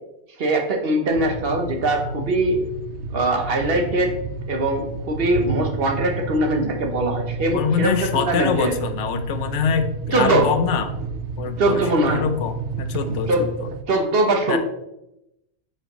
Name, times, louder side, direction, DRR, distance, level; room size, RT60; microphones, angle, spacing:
voice 1, 0.4-2.6 3.1-4.1 4.5-8.7 10.1-10.5 11.6-12.3 13.3-13.5 13.9-14.6, right 2 dB, 60° right, 3 dB, 1.1 m, -21 dB
sound 1, 1.2-13.8, right 4 dB, 75° right, 0.9 m, -31 dB
voice 2, 7.5-10.9 11.4-13.7 14.5-14.6, left 6 dB, 85° left, 9 dB, 1.0 m, -24 dB
8.6 x 4.3 x 3.0 m, 0.88 s
omnidirectional pair, 1.2 m